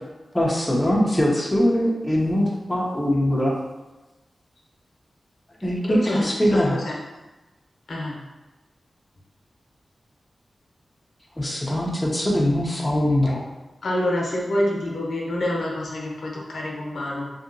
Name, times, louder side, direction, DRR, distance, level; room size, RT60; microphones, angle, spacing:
voice 1, 0.3-3.5 5.6-6.8 11.4-13.4, equal, 10° left, -3 dB, 0.4 m, -22 dB
voice 2, 5.8-6.3 6.7-7.0 7.9-8.2 13.8-17.3, left 1 dB, 85° left, -2 dB, 0.6 m, -27 dB
2.8 x 2.7 x 2.5 m, 1.1 s
wide cardioid pair, 140°, 0 cm